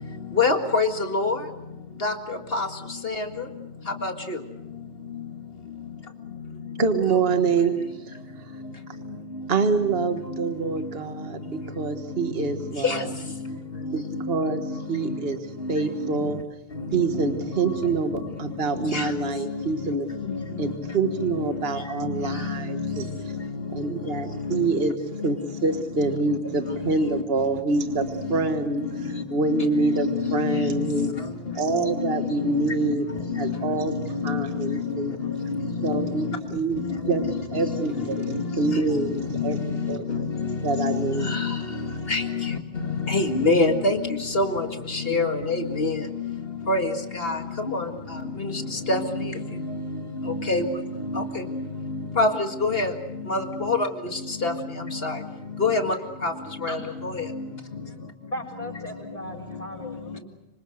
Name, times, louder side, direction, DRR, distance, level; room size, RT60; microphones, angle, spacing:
voice 1, 0.4-0.9 1.1-1.3 2.0-2.1 42.1-42.2 43.1-43.9 44.4-44.5 45.1-45.3 45.8-45.9 46.7-46.8 48.9-49.0 50.5-50.6 52.2-52.3 52.7-52.9 53.3-53.4 54.4-54.5 55.6-55.8, left 2 dB, 60° left, 5 dB, 2.2 m, -20 dB
voice 2, 6.8-8.1 9.5-13.1 13.9-16.4 16.9-20.1 20.6-23.3 23.7-25.0 25.2-31.1 31.6-33.1 33.4-35.1 35.8-40.1 40.6-41.4, right 4 dB, 60° right, 7 dB, 1.7 m, -26 dB
voice 3, 58.3-60.2, left 1 dB, 35° left, 0 dB, 7.2 m, -36 dB
26.0 x 25.5 x 6.5 m, 0.94 s
omnidirectional pair, 1.1 m